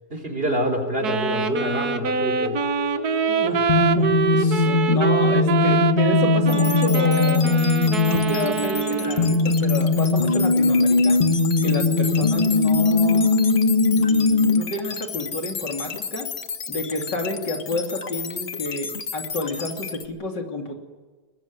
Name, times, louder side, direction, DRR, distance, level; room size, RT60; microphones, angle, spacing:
voice 1, 0.1-2.6, equal, 30° right, 5 dB, 4.2 m, -27 dB
sound 1, 0.8-14.6, left 3 dB, 25° left, 1.2 m, -21 dB
Wind instrument woodwind instrument, 1.0-9.5, right 7 dB, 60° right, 1.7 m, -25 dB
voice 2, 3.3-7.6 7.9-11.2 11.6-13.3 13.8-16.3 16.7-20.7, left 2 dB, 75° left, 3 dB, 3.6 m, -29 dB
sound 2, 6.5-20.1, left 6 dB, 45° left, 1.6 m, -33 dB
22.5 x 20.5 x 9.5 m, 1.3 s
omnidirectional pair, 1.9 m